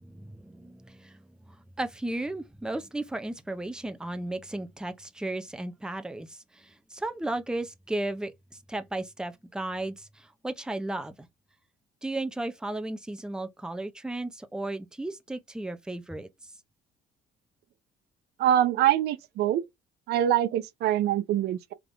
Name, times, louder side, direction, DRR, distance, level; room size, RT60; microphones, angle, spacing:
voice 1, 0.0-11.3 12.0-16.3, right 2 dB, 5° right, 0.6 m, -35 dB
voice 2, 18.4-19.6 20.1-21.7, right 11 dB, 75° right, 0.5 m, -24 dB
3.7 x 3.6 x 3.3 m
cardioid pair, 110°, 17 cm